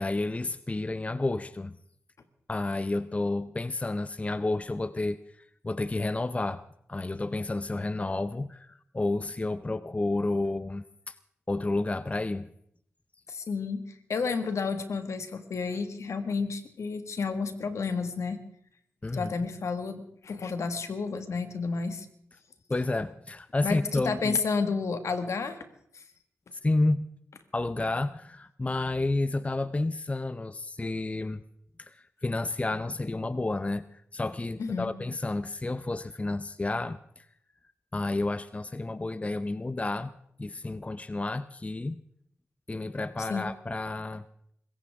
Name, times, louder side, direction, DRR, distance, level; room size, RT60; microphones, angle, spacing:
voice 1, 0.0-1.8 2.5-6.6 6.9-11.2 11.5-12.5 19.0-19.3 22.7-24.4 26.6-27.0 27.5-31.4 31.8-37.3 37.9-40.1 40.4-42.0 42.7-44.2, left 2 dB, 25° left, 14 dB, 0.6 m, -30 dB
voice 2, 13.3-18.4 19.1-22.1 23.6-25.6 25.9-26.0 34.6-34.9 43.2-43.5, left 4 dB, 70° left, 8 dB, 1.8 m, -31 dB
24.5 x 15.0 x 3.6 m, 0.70 s
cardioid pair, 50°, 5 cm